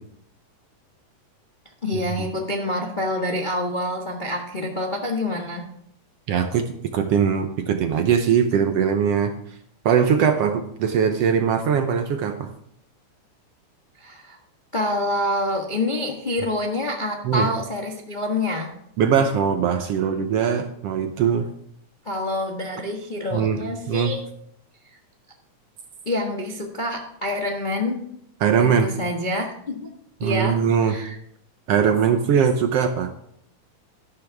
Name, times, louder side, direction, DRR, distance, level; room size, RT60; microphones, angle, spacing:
voice 1, 1.8-5.7 14.0-14.4 14.7-18.7 22.0-24.2 26.0-28.0 28.6-29.9 30.2-31.2, left 1 dB, 35° left, 0 dB, 0.7 m, -27 dB
voice 2, 6.3-9.3 9.8-12.5 17.2-17.5 19.0-21.5 23.3-23.6 23.9-24.1 28.4-28.9 30.2-31.0 31.7-33.1, right 7 dB, 70° right, 7 dB, 1.6 m, -21 dB
13.0 x 12.0 x 3.5 m, 0.69 s
omnidirectional pair, 3.4 m